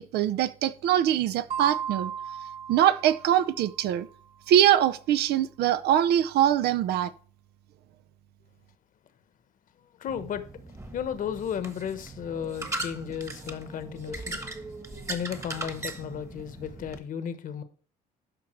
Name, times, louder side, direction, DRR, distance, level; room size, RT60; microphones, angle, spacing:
voice 1, 0.0-2.1 2.7-4.1 4.5-7.1, right 11 dB, 75° right, 0.6 m, -23 dB
sound 1, 1.5-4.0, right 8 dB, 40° right, 1.8 m, -36 dB
voice 2, 10.0-10.4 10.9-14.4 15.1-17.6, left 8 dB, 55° left, 1.2 m, -34 dB
sound 2, 10.1-17.0, right 2 dB, 15° right, 1.3 m, -39 dB
12.0 x 5.3 x 4.5 m
cardioid pair, 110°, 17 cm